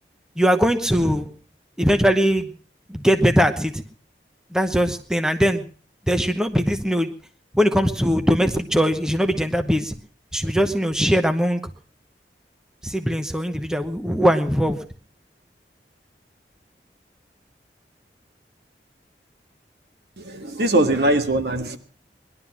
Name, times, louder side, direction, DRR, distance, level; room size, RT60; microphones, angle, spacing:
voice 1, 0.4-1.3 1.8-2.5 2.9-3.8 4.5-5.7 6.1-7.1 7.5-10.0 10.3-11.6 12.8-14.8, equal, 5° right, 7 dB, 0.9 m, -20 dB
voice 2, 20.2-21.8, right 1 dB, 70° right, 6 dB, 1.8 m, -21 dB
20.0 x 12.0 x 5.9 m, 0.42 s
head